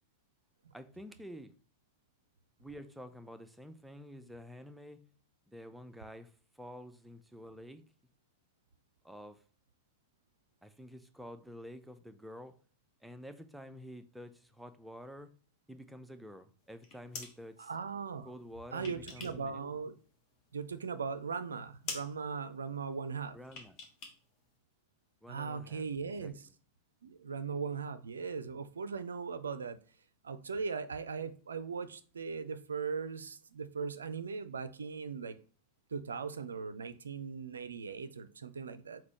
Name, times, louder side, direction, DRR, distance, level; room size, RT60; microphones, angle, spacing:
voice 1, 0.7-1.5 2.6-5.0 5.5-6.3 6.6-7.8 9.0-9.4 10.6-12.6 13.0-15.3 15.7-17.7 18.2-19.6 23.3-23.8 25.2-25.8 26.2-26.3, equal, ahead, 0.5 m, -49 dB
sound 1, 16.7-17.4 18.4-19.5 19.8-20.7 21.0-21.1 21.4-21.6 21.8-22.1 23.4-24.2 24.4-24.5, left 4 dB, 35° left, 1.0 m, -45 dB
voice 2, 17.6-18.3 18.7-19.9 20.5-23.4 25.3-26.5 27.0-29.8 30.2-35.3 35.9-39.0, right 5 dB, 70° right, 0.4 m, -39 dB
4.4 x 4.0 x 3.0 m
figure-of-eight pair, 90°, 0 cm